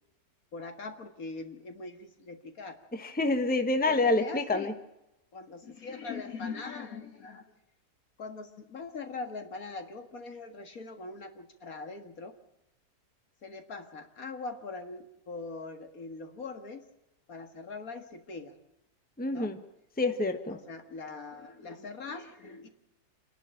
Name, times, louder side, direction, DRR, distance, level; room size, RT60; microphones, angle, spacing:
voice 1, 0.5-2.8 3.9-4.7 5.3-7.4 8.2-12.4 13.4-16.9 17.3-18.6 19.3-19.5 20.5-22.7, left 4 dB, 65° left, 7 dB, 2.2 m, -41 dB
voice 2, 2.9-4.7 19.2-19.6 20.0-20.6, left 2 dB, 5° left, 8 dB, 1.2 m, -27 dB
27.0 x 11.5 x 8.9 m, 0.88 s
omnidirectional pair, 1.7 m